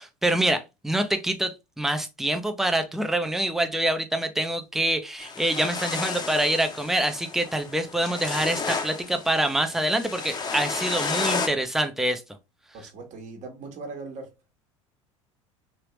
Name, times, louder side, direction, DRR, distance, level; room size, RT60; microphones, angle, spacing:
voice 1, 0.0-12.2, right 1 dB, ahead, 0.7 m, -26 dB
sound 1, 5.2-11.5, left 4 dB, 25° left, 0.9 m, -32 dB
voice 2, 12.7-14.3, right 3 dB, 50° right, 1.4 m, -39 dB
3.4 x 2.9 x 3.1 m
hypercardioid pair, 75°, 16 cm